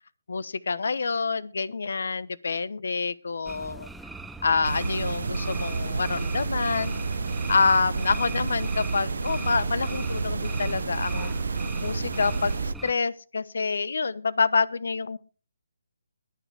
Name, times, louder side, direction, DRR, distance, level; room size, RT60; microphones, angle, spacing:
voice 1, 0.3-3.9 4.4-6.9 7.5-15.2, left 4 dB, 70° left, 18 dB, 1.1 m, -27 dB
sound 1, 3.5-12.9, right 2 dB, 5° right, 0.6 m, -41 dB
sound 2, 4.6-12.7, right 4 dB, 75° right, 0.5 m, -30 dB
22.0 x 7.7 x 3.5 m, 0.35 s
hypercardioid pair, 155°, 0 cm